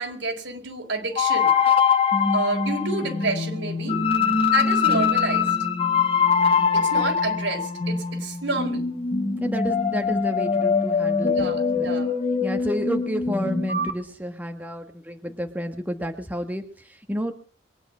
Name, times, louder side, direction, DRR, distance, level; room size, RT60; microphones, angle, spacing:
voice 1, 0.0-1.5 2.3-4.0 4.5-5.6 6.7-8.9 11.3-12.2, right 3 dB, 80° right, 3 dB, 4.8 m, -29 dB
sound 1, 1.2-13.9, left 6 dB, 30° left, 1.8 m, -23 dB
voice 2, 6.6-6.9 9.4-12.0 12.4-17.3, equal, 10° right, 5 dB, 1.4 m, -31 dB
22.5 x 10.0 x 6.1 m, 0.42 s
head